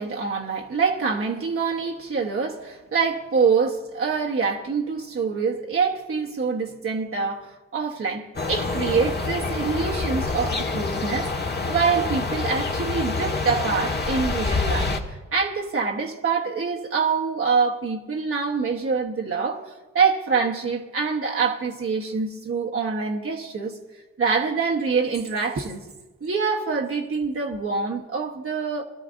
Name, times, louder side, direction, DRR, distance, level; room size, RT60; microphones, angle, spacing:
voice 1, 0.0-11.3 11.7-19.6 19.9-23.8 24.2-25.8 26.2-28.8, right 5 dB, 45° right, 1.2 m, -25 dB
sound 1, 8.3-15.0, left 3 dB, 35° left, 1.4 m, -27 dB
21.0 x 12.5 x 2.6 m
cardioid pair, 70°, 30 cm